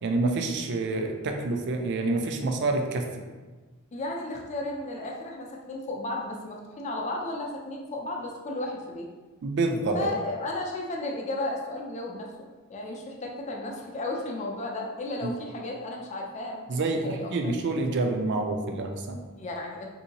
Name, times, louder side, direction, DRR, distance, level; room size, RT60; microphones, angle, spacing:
voice 1, 0.0-3.1 9.4-10.1 15.2-15.3 16.7-19.2, right 2 dB, 55° right, 4 dB, 0.4 m, -27 dB
voice 2, 3.9-9.1 9.9-12.3 12.7-17.5 19.4-19.9, left 2 dB, 35° left, 0 dB, 0.5 m, -34 dB
3.6 x 2.7 x 2.8 m, 1.3 s
head